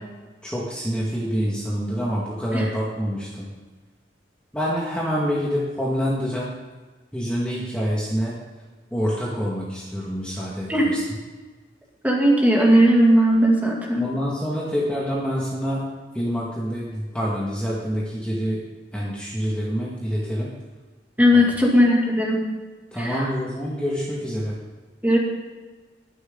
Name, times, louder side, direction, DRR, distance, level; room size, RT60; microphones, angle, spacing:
voice 1, 0.4-3.5 4.5-6.5 7.1-8.3 8.9-11.0 14.0-15.8 16.1-18.6 18.9-20.5 21.3-21.5 22.9-24.5, equal, 5° left, -6 dB, 1.9 m, -26 dB
voice 2, 10.7-11.0 12.0-14.0 21.2-22.4 23.0-23.3 25.0-25.2, equal, 10° right, -2 dB, 2.4 m, -17 dB
21.5 x 7.9 x 3.9 m, 1.3 s
head